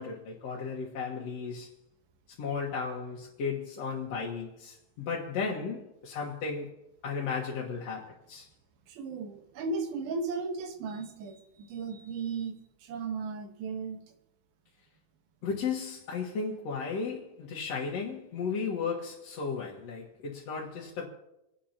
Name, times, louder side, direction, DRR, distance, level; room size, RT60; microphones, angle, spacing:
voice 1, 0.0-1.7 2.4-6.7 7.0-8.5 15.4-21.1, left 5 dB, 55° left, 2.2 m, -35 dB
voice 2, 8.9-14.0, right 4 dB, 80° right, 3.1 m, -36 dB
28.5 x 11.0 x 2.9 m
omnidirectional pair, 4.2 m